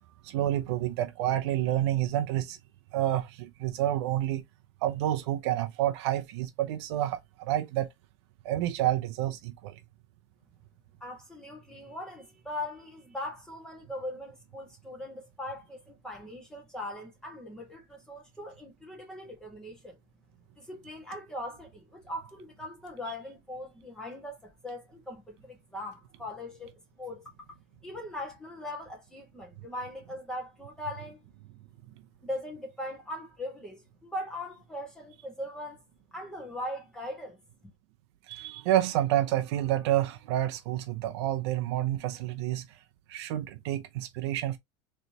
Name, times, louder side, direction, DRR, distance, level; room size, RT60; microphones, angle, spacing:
voice 1, 0.2-2.6 2.9-4.4 4.8-7.9 8.4-9.8 38.3-42.8 43.1-44.6, right 13 dB, 65° right, 0.7 m, -29 dB
voice 2, 11.0-20.0 20.6-27.2 27.8-31.2 32.2-35.8 36.1-37.4, left 1 dB, 5° left, 1.8 m, -40 dB
4.0 x 3.3 x 2.9 m
supercardioid pair, 150°, 15 cm